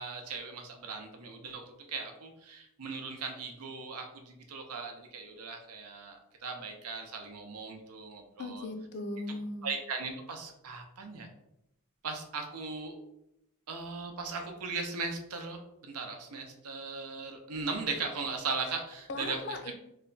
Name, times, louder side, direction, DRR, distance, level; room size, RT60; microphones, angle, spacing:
voice 1, 0.0-8.7 9.6-11.3 12.0-12.9 13.7-19.4, right 4 dB, 85° right, 4 dB, 0.7 m, -38 dB
voice 2, 8.4-9.7 19.1-19.7, left 2 dB, 50° left, 7 dB, 0.5 m, -38 dB
3.2 x 2.2 x 3.9 m, 0.81 s
head